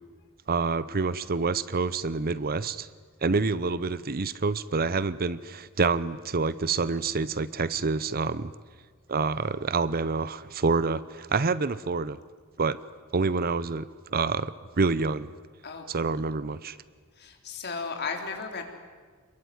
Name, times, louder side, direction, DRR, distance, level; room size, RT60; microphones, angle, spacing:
voice 1, 0.5-2.9 3.2-8.5 9.1-12.2 12.6-12.8 13.1-13.9 14.1-15.3 15.9-16.8, right 4 dB, 45° right, 16 dB, 0.8 m, -27 dB
voice 2, 17.2-18.6, left 4 dB, 50° left, 4 dB, 3.9 m, -34 dB
27.5 x 22.0 x 9.6 m, 1.5 s
head